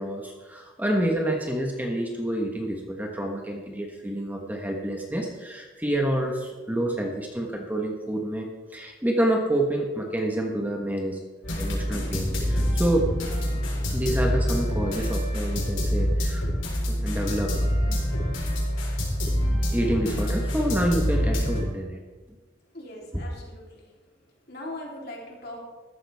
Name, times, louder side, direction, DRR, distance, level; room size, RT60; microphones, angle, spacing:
voice 1, 0.0-11.2 11.6-13.1 13.9-16.6 16.9-17.5 17.9-18.0 19.7-22.0, right 1 dB, 10° right, 1 dB, 1.3 m, -28 dB
sound 1, 11.4-21.6, equal, 80° left, 4.4 m, -26 dB
voice 2, 22.7-23.9 24.5-25.6, left 1 dB, 55° left, -2 dB, 3.5 m, -40 dB
14.5 x 12.5 x 3.6 m, 1.4 s
head